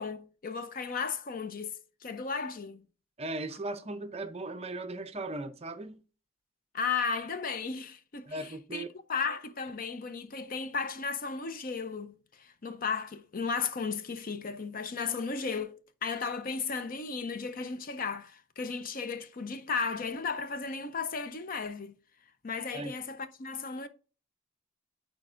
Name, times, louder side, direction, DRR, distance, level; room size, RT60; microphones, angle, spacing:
voice 1, 0.0-2.8 6.7-8.8 9.1-21.9 22.4-23.9, left 5 dB, 45° left, 0.5 m, -35 dB
voice 2, 3.2-6.0 8.3-8.9 22.7-22.9, right 2 dB, 30° right, 0.6 m, -37 dB
9.1 x 4.4 x 2.5 m
head